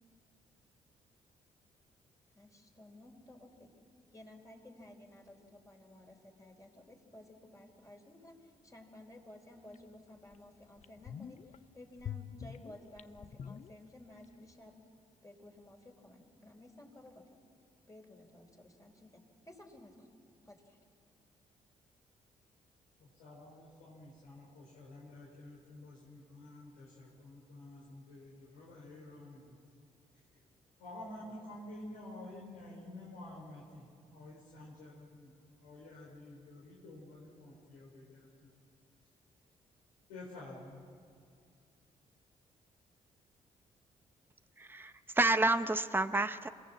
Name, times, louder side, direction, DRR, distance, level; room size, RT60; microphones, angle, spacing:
voice 1, 2.3-3.7 4.1-14.7 15.2-17.4 17.9-20.1 20.4-20.8, left 1 dB, 20° left, 2 dB, 4.7 m, -55 dB
sound 1, 9.7-9.8 10.3-10.4 10.8-11.6 12.0-14.3 14.5-14.6, left 8 dB, 50° left, 0.7 m, -45 dB
voice 2, 23.0-29.6 30.1-30.4 30.8-35.3 35.6-38.5 40.1-40.9, left 1 dB, 90° left, -5 dB, 4.1 m, -50 dB
voice 3, 44.6-46.5, right 2 dB, 15° right, 10 dB, 0.9 m, -29 dB
26.0 x 17.5 x 7.3 m, 2.2 s
hypercardioid pair, 50°, 16 cm